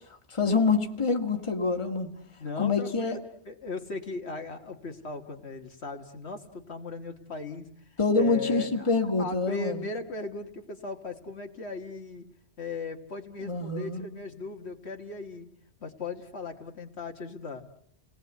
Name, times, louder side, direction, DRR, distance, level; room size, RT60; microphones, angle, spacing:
voice 1, 0.3-2.1 2.6-3.2 8.0-9.8 13.4-14.0, left 4 dB, 25° left, 5 dB, 1.8 m, -26 dB
voice 2, 2.4-3.2 3.5-8.9 9.2-12.3 12.6-15.5 15.8-17.6, left 3 dB, 65° left, 5 dB, 1.8 m, -37 dB
29.5 x 19.0 x 8.1 m, 0.66 s
omnidirectional pair, 1.2 m